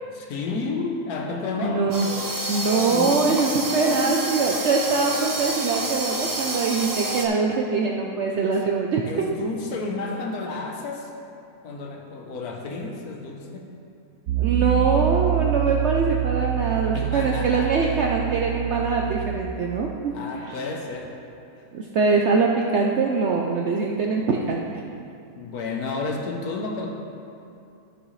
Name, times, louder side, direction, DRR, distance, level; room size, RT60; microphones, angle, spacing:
voice 1, 0.2-2.0 2.9-4.3 9.0-11.1 11.6-13.7 16.9-18.0 19.6-19.7 20.1-21.2 25.4-26.9, left 3 dB, 85° left, 2 dB, 1.4 m, -31 dB
voice 2, 1.6-2.1 2.5-9.0 14.4-20.6 21.7-24.6, right 4 dB, 60° right, 0 dB, 0.8 m, -23 dB
sound 1, 1.9-7.3, right 2 dB, 25° right, 0.4 m, -28 dB
Piano, 14.3-19.4, right 13 dB, 85° right, 1.1 m, -26 dB
14.5 x 6.4 x 3.2 m, 2.6 s
omnidirectional pair, 1.6 m